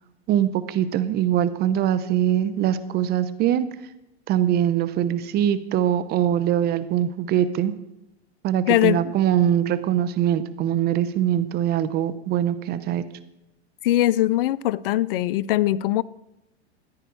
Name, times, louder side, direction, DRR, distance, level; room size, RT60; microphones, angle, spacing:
voice 1, 0.3-3.7 4.3-7.7 8.4-13.0, right 10 dB, 30° right, 0.8 m, -22 dB
voice 2, 8.7-9.0 13.8-16.0, left 14 dB, 55° left, 0.5 m, -21 dB
14.5 x 9.8 x 4.7 m
hypercardioid pair, 125°, 33 cm